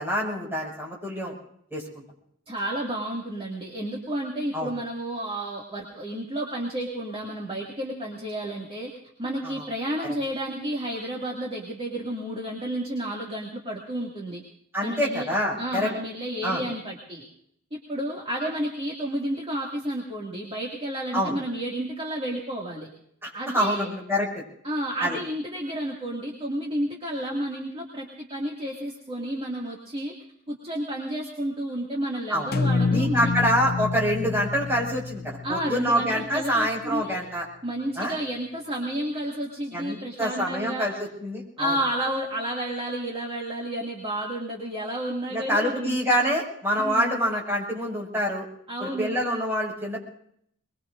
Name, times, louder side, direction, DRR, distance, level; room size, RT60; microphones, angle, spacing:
voice 1, 0.0-1.3 1.7-2.0 4.5-4.7 9.4-9.6 14.7-15.9 16.4-16.6 21.1-21.4 23.2-24.4 25.0-25.2 32.3-32.5 32.9-37.4 38.0-38.1 39.7-41.8 45.3-48.4 48.8-50.0, equal, 10° right, -2 dB, 6.3 m, -26 dB
voice 2, 2.5-8.9 9.2-14.4 14.8-15.3 15.6-17.2 17.7-22.9 23.3-23.9 24.6-30.1 30.5-33.3 35.4-37.2 37.6-40.9 41.6-46.0 46.8-47.2 48.7-49.2, right 1 dB, 25° right, -2 dB, 2.4 m, -31 dB
sound 1, 32.5-36.7, left 4 dB, 50° left, 0.7 m, -28 dB
23.5 x 22.0 x 2.6 m, 0.69 s
head